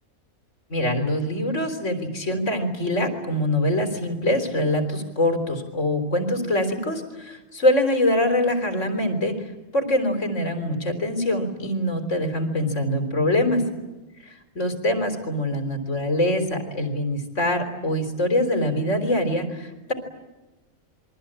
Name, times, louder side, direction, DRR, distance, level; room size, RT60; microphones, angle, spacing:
voice 1, 0.7-13.6 14.2-19.9, left 1 dB, 55° left, 7 dB, 4.0 m, -24 dB
28.5 x 24.0 x 8.8 m, 1.1 s
omnidirectional pair, 1.5 m